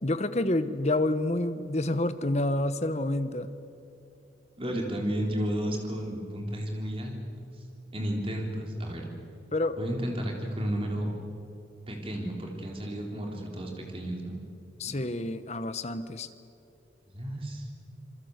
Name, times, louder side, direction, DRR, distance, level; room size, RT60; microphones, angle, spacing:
voice 1, 0.0-3.5 9.5-9.8 14.8-16.3, left 1 dB, 35° left, 12 dB, 1.1 m, -28 dB
voice 2, 4.6-7.5 7.9-9.1 9.8-11.1 11.9-14.4 14.9-15.0 17.1-17.7, equal, 30° right, 1 dB, 3.8 m, -32 dB
27.0 x 22.5 x 8.2 m, 2.7 s
head